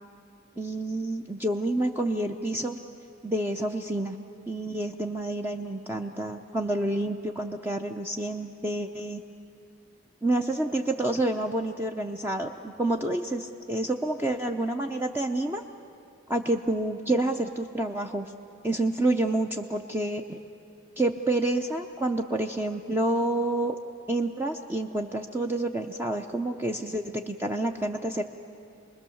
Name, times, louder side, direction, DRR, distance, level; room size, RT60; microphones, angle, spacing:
voice 1, 0.6-2.8 3.2-4.2 4.5-9.2 10.2-15.6 16.3-18.3 18.6-20.4 21.0-23.8 24.1-28.2, right 1 dB, 10° right, 3 dB, 0.6 m, -28 dB
27.5 x 20.5 x 7.1 m, 2.5 s
head